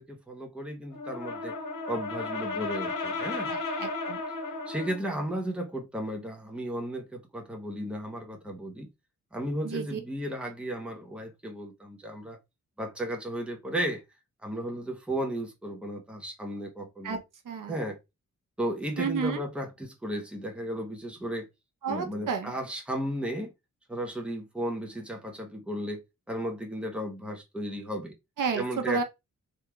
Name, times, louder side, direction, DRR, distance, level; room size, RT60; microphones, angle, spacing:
voice 1, 0.0-1.5 1.9-3.5 4.7-8.9 9.3-12.4 12.8-14.0 14.4-17.2 17.7-18.0 18.6-21.5 21.9-23.5 23.9-26.0 26.3-28.1 28.5-29.0, right 1 dB, 5° right, 0.7 m, -34 dB
Brass instrument, 0.9-5.1, left 3 dB, 80° left, 1.1 m, -34 dB
voice 2, 3.5-4.2 9.6-10.0 17.0-17.2 17.5-17.8 19.0-19.4 21.8-22.5 28.4-29.0, right 5 dB, 75° right, 0.7 m, -31 dB
3.4 x 2.3 x 2.9 m
wide cardioid pair, 150°, 32 cm